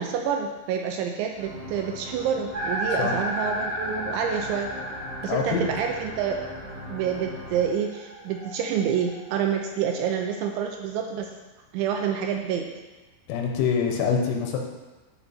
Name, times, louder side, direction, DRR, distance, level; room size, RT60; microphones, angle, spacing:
voice 1, 0.0-4.7 5.2-6.4 6.9-11.3 11.7-12.7, right 7 dB, 80° right, 3 dB, 2.8 m, -28 dB
sound 1, 1.3-7.6, equal, 60° right, 4.4 m, -40 dB
sound 2, 2.5-10.5, equal, 25° right, 3.5 m, -35 dB
voice 2, 5.2-5.7 13.3-14.6, left 6 dB, 85° left, 2 dB, 3.5 m, -25 dB
13.0 x 5.6 x 4.3 m, 1.2 s
omnidirectional pair, 5.6 m